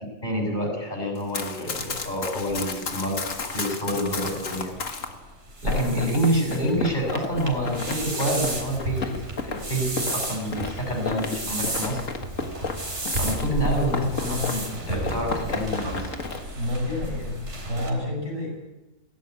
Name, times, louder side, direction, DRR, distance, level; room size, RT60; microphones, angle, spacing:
voice 1, 0.2-3.2 3.5-4.7 5.6-12.0 13.2-16.1, equal, 35° left, 1 dB, 6.7 m, -27 dB
Run, 1.2-5.1 5.7-14.8 15.0-16.4, left 4 dB, 70° left, 2.1 m, -33 dB
sound 1, 1.7-17.9, right 1 dB, 55° right, 3.9 m, -33 dB
voice 2, 5.6-6.1 16.5-18.6, left 1 dB, 70° right, -1 dB, 8.4 m, -30 dB
17.0 x 16.5 x 9.5 m, 1.0 s
omnidirectional pair, 1.4 m